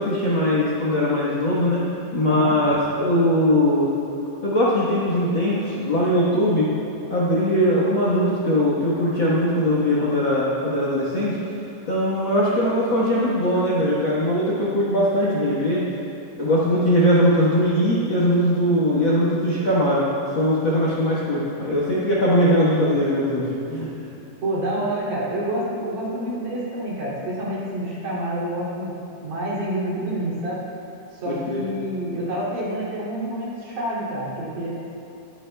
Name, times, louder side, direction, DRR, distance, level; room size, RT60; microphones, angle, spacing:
voice 1, 0.0-1.9 2.1-3.9 4.4-6.7 7.1-11.6 11.9-15.9 16.4-20.1 20.3-23.9 31.2-31.6, equal, 55° left, -6 dB, 1.4 m, -20 dB
voice 2, 24.4-28.9 29.2-30.6 31.1-34.7, right 1 dB, 70° right, -7 dB, 4.2 m, -28 dB
21.5 x 9.9 x 2.3 m, 2.9 s
omnidirectional pair, 3.8 m